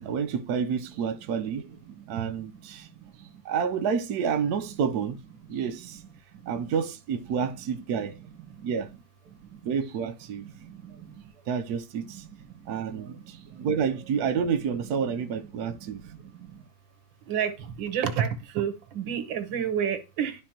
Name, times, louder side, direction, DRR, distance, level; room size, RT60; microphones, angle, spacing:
voice 1, 0.0-1.7 2.1-2.9 3.4-5.2 5.5-6.0 6.5-8.2 8.6-8.9 9.6-10.5 11.5-12.2 12.7-16.0, right 6 dB, 65° right, 1.2 m, -29 dB
voice 2, 17.8-20.3, right 8 dB, 85° right, 1.8 m, -28 dB
12.0 x 4.2 x 2.9 m
omnidirectional pair, 2.0 m